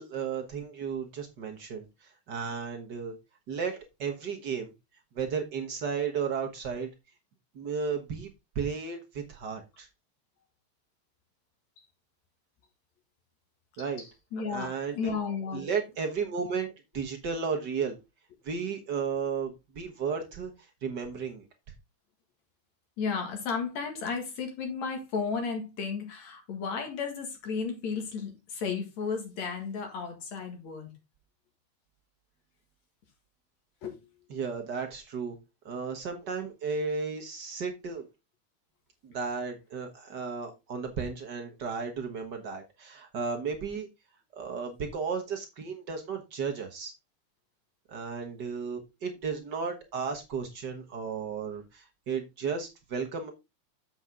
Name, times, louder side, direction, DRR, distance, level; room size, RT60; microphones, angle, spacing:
voice 1, 0.0-1.9 2.3-3.1 3.5-4.7 5.1-6.9 7.5-8.3 8.5-9.9 13.8-14.0 14.5-15.1 15.5-17.9 18.4-20.5 20.8-21.4 34.3-35.4 35.6-38.1 39.0-43.9 44.3-46.9 47.9-53.3, right 5 dB, 55° right, 1.2 m, -34 dB
voice 2, 14.0-15.7 23.0-30.9 33.8-34.0, left 5 dB, 65° left, 3.0 m, -34 dB
7.7 x 7.1 x 3.6 m
omnidirectional pair, 3.6 m